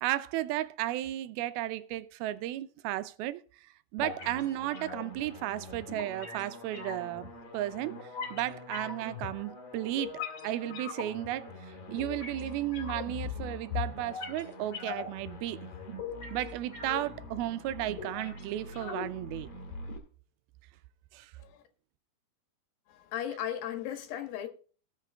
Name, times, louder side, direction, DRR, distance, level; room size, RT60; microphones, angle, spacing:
voice 1, 0.0-3.4 3.9-7.9 8.3-15.6 16.3-19.5 21.1-21.3, right 14 dB, 80° right, 2.5 m, -34 dB
sound 1, 4.0-20.0, left 5 dB, 45° left, 3.4 m, -41 dB
voice 2, 22.9-24.5, left 10 dB, 70° left, 3.3 m, -36 dB
18.5 x 6.6 x 3.6 m
omnidirectional pair, 4.4 m